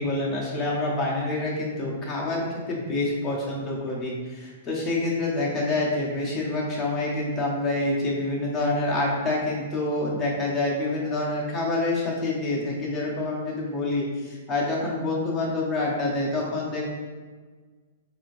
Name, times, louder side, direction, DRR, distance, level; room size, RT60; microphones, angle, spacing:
voice 1, 0.0-14.1 14.5-16.8, left 2 dB, 15° left, -5 dB, 0.9 m, -27 dB
4.1 x 2.7 x 3.0 m, 1.4 s
hypercardioid pair, 150°, 0 cm